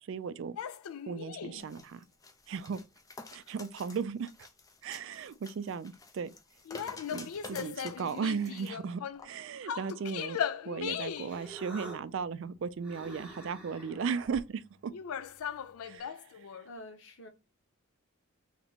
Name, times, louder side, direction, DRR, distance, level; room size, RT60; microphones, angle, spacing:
voice 1, 0.0-0.6 1.1-2.0 2.5-2.8 3.3-4.3 4.8-6.3 7.1-10.4 10.6-14.9 15.8-16.5, right 6 dB, 60° right, 0.3 m, -36 dB
sound 1, 0.6-1.7 6.6-9.3 9.6-11.4 14.9-16.7, left 8 dB, 80° left, 0.4 m, -38 dB
sound 2, 1.6-8.7 9.2-9.3, left 3 dB, 15° left, 0.4 m, -50 dB
Human voice, 10.8-16.0, right 2 dB, 5° right, 0.8 m, -50 dB
voice 2, 16.6-17.3, left 1 dB, 55° left, 1.0 m, -47 dB
3.3 x 2.9 x 4.1 m
head